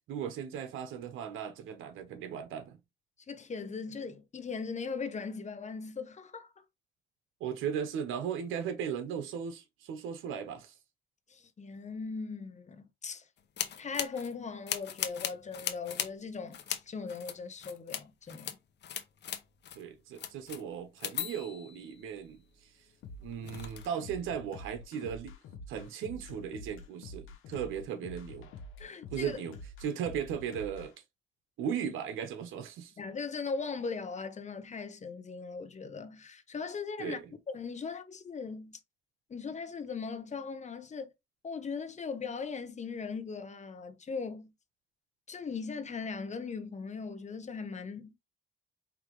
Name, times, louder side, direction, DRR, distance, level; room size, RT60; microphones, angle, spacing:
voice 1, 0.1-2.8 7.4-10.7 19.7-22.7 23.2-25.3 25.7-28.5 29.1-30.9 31.6-32.9 37.0-37.3, right 8 dB, 90° right, 1.0 m, -37 dB
voice 2, 3.3-6.5 11.3-13.2 13.8-18.5 28.8-29.4 33.0-37.2 37.5-38.8 39.3-41.1 41.4-44.5 45.3-48.1, left 5 dB, 35° left, 1.2 m, -39 dB
sound 1, 13.6-14.3 14.7-16.1 16.5-16.8 17.1-18.0 18.3-18.6 18.8-19.8 20.2-22.5 23.1-24.0, left 9 dB, 60° left, 1.0 m, -38 dB
sound 2, 23.0-30.9, left 2 dB, 90° left, 1.2 m, -47 dB
4.9 x 3.3 x 3.1 m
cardioid pair, 90°, 20 cm